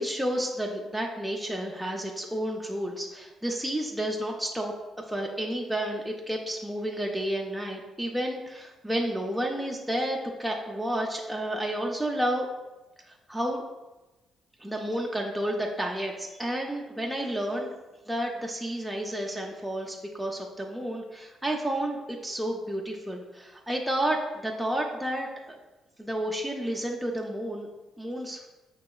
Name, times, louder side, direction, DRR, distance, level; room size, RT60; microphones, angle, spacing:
voice 1, 0.0-4.7 5.1-12.5 13.1-13.6 14.6-17.7 18.1-25.6 26.0-27.7 28.0-28.4, right 1 dB, ahead, -1 dB, 0.5 m, -31 dB
5.9 x 2.9 x 2.3 m, 1.1 s
cardioid pair, 90°, 0 cm